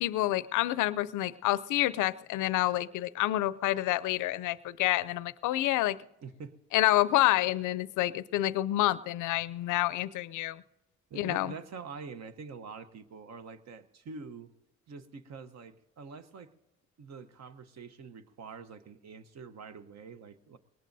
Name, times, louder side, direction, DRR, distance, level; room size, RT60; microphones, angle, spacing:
voice 1, 0.0-6.0 6.7-10.6 11.2-11.5, left 15 dB, 80° left, 17 dB, 0.5 m, -28 dB
voice 2, 6.2-6.6 11.1-14.5 14.9-16.5 17.0-20.6, right 5 dB, 60° right, 11 dB, 0.9 m, -45 dB
21.5 x 19.0 x 2.7 m, 0.95 s
cardioid pair, 90°, 30 cm